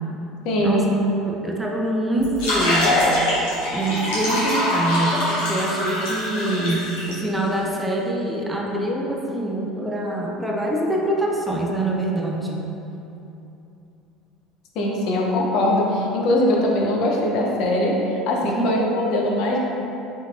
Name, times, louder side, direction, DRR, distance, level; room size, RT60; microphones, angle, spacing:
voice 1, 0.4-0.9 14.8-19.6, left 1 dB, 60° left, -2 dB, 0.6 m, -21 dB
voice 2, 1.2-3.0 3.7-12.6 18.4-18.8, right 1 dB, 10° right, -1 dB, 0.6 m, -25 dB
sound 1, 2.2-7.1, left 1 dB, 80° left, 1.2 m, -23 dB
4.0 x 3.7 x 2.4 m, 2.9 s
hypercardioid pair, 70°, 0 cm